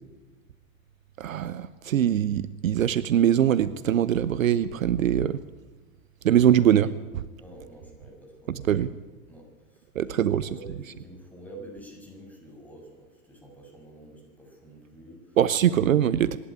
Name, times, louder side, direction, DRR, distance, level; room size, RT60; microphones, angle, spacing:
voice 1, 1.2-5.4 6.2-7.2 8.5-8.9 9.9-10.5 15.4-16.4, right 10 dB, 65° right, 17 dB, 0.8 m, -22 dB
voice 2, 7.4-8.9 9.3-15.4, right 1 dB, 5° left, 0 dB, 7.0 m, -48 dB
25.5 x 11.5 x 9.9 m, 1.3 s
figure-of-eight pair, 95°, 43 cm